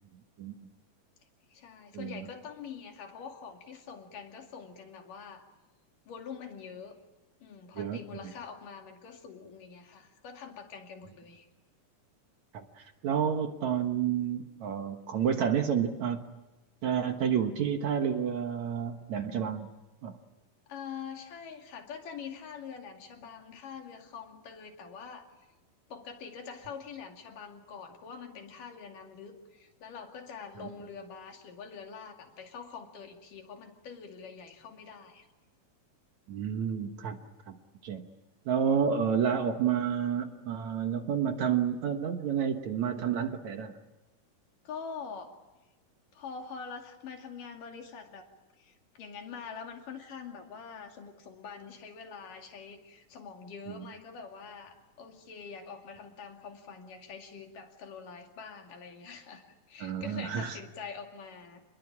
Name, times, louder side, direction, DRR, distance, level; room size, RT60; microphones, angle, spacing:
voice 1, 1.5-5.4 6.1-7.0 7.4-11.5 20.7-25.3 25.9-35.3 44.6-45.4 46.1-48.3 48.6-61.6, left 6 dB, 65° left, 4 dB, 3.9 m, -45 dB
voice 2, 12.5-16.3 16.8-19.7 20.0-20.2 36.3-37.2 37.5-37.6 37.8-38.1 38.5-43.7 59.8-60.6, right 8 dB, 60° right, 6 dB, 2.4 m, -30 dB
27.5 x 21.5 x 8.6 m, 1.1 s
omnidirectional pair, 4.1 m